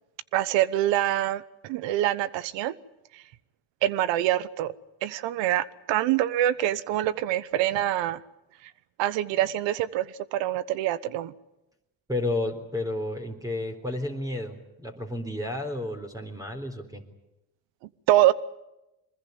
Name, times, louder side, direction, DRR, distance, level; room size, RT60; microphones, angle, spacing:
voice 1, 0.3-2.8 3.1-3.2 3.8-4.7 5.0-8.2 9.0-11.3 18.1-18.3, right 13 dB, 85° right, 1.1 m, -25 dB
voice 2, 12.1-17.0, left 2 dB, 10° right, 3.9 m, -31 dB
23.5 x 20.5 x 9.5 m
supercardioid pair, 75°, 43 cm